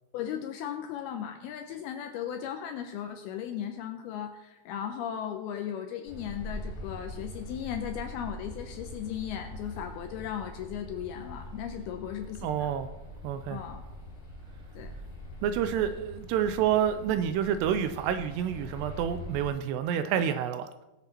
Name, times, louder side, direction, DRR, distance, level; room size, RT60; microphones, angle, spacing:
voice 1, 0.1-12.7 13.5-13.8 14.8-14.9, left 9 dB, 80° left, 4 dB, 2.3 m, -36 dB
sound 1, 6.1-19.5, left 1 dB, 35° left, 5.2 m, -43 dB
voice 2, 12.4-12.9 13.2-13.6 15.4-20.8, right 9 dB, 80° right, 10 dB, 2.5 m, -28 dB
21.0 x 7.6 x 2.9 m, 1.0 s
omnidirectional pair, 5.1 m